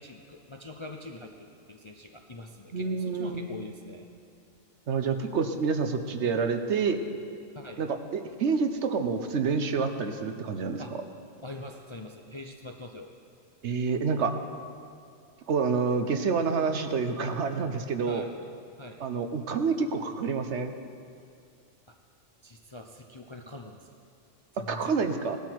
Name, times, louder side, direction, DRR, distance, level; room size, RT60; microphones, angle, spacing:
voice 1, 0.0-4.1 7.5-7.8 10.8-11.0 11.4-13.1 18.1-18.4 18.8-19.0 21.9-22.0 22.4-23.9 24.5-25.0, left 2 dB, 30° left, 2 dB, 0.5 m, -43 dB
voice 2, 2.7-3.5 4.9-7.0 7.8-10.8 13.6-14.3 15.5-18.2 19.0-20.7 24.7-25.4, right 5 dB, 65° right, 7 dB, 1.1 m, -28 dB
17.5 x 12.0 x 4.6 m, 2.3 s
omnidirectional pair, 1.3 m